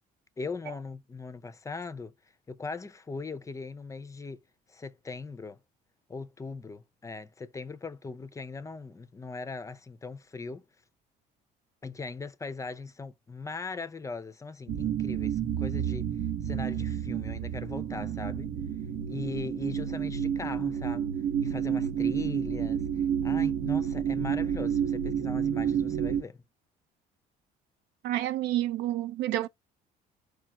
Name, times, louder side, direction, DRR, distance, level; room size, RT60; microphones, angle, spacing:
voice 1, 0.4-2.1 2.5-4.4 4.7-5.6 6.1-10.6 11.8-16.1 16.4-18.5 19.1-21.1 21.4-26.4, left 4 dB, 20° left, 0.4 m, -39 dB
sound 1, 14.7-26.2, right 8 dB, 65° right, 0.8 m, -30 dB
voice 2, 28.0-29.5, right 14 dB, 85° right, 0.5 m, -29 dB
4.8 x 2.4 x 2.9 m
cardioid pair, 110°, 17 cm